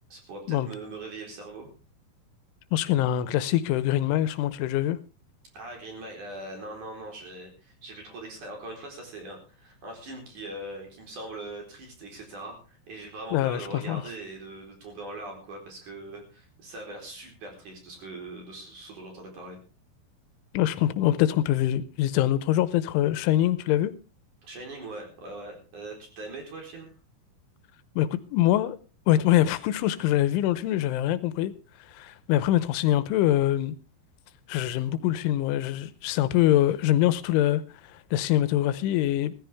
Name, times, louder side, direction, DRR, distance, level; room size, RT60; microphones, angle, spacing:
voice 1, 0.1-1.7 5.5-19.6 24.4-26.9, right 2 dB, 45° right, 5.3 m, -41 dB
voice 2, 2.7-5.0 13.3-14.0 20.5-23.9 28.0-28.8 29.1-31.5 31.9-33.7 34.5-39.3, left 13 dB, 85° left, 3.3 m, -24 dB
16.5 x 14.5 x 3.5 m
omnidirectional pair, 5.4 m